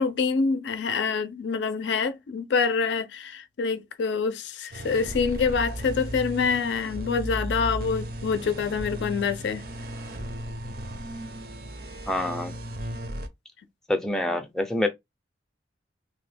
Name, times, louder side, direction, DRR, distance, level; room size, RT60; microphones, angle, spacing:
voice 1, 0.0-9.6, left 5 dB, 75° left, 0.4 m, -26 dB
sound 1, 4.7-13.3, right 1 dB, 50° right, 0.5 m, -35 dB
voice 2, 12.1-12.6 13.9-14.9, left 1 dB, 5° left, 0.4 m, -26 dB
2.7 x 2.2 x 3.3 m
head